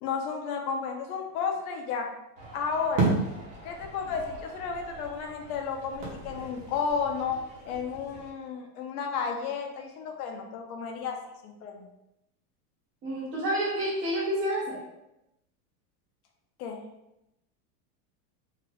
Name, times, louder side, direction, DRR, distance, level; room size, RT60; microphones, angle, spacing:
voice 1, 0.0-2.1 2.5-3.1 3.6-7.4 7.7-11.2 11.4-11.9 16.6-16.8, left 6 dB, 70° left, 3 dB, 0.7 m, -32 dB
sound 1, 2.4-8.3, right 3 dB, 55° right, 1.1 m, -34 dB
voice 2, 13.0-14.8, right 1 dB, 25° right, -4 dB, 1.0 m, -29 dB
2.8 x 2.4 x 3.3 m, 0.88 s
supercardioid pair, 150°, 46 cm